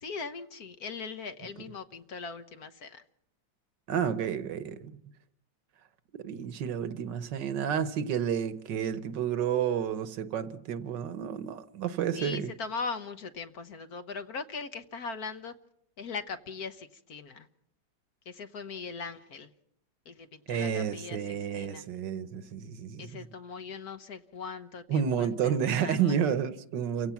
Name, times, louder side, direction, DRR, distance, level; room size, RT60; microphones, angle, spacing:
voice 1, 0.0-3.0 12.1-15.5 16.0-17.5 18.3-19.5 20.1-21.8 23.0-26.1, left 4 dB, 55° left, 1.4 m, -40 dB
voice 2, 3.9-5.0 6.2-12.5 20.5-23.3 24.9-27.1, right 8 dB, 65° right, 1.6 m, -30 dB
29.5 x 16.5 x 5.8 m
omnidirectional pair, 2.1 m